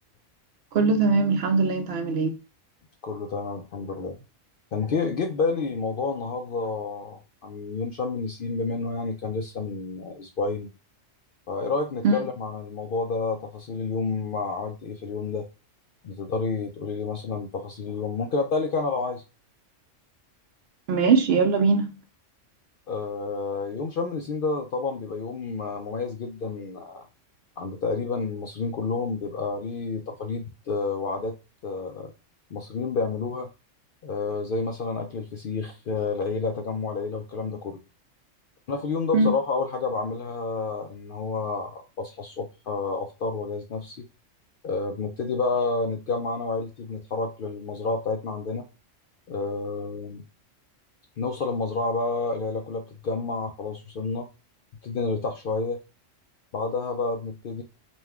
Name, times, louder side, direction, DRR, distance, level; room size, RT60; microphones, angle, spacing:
voice 1, 0.7-2.3 12.0-12.1 20.9-21.9 39.1-39.3, right 4 dB, 60° right, 0.7 m, -21 dB
voice 2, 3.0-4.2 4.7-10.7 11.5-15.5 16.0-19.2 22.9-27.0 27.6-31.4 31.6-32.1 32.5-33.5 34.0-37.8 38.7-44.1 44.6-48.6 49.3-50.2 51.2-54.3 54.8-55.8 56.5-57.6, left 4 dB, 60° left, 0.5 m, -29 dB
5.3 x 2.2 x 3.4 m
omnidirectional pair, 1.3 m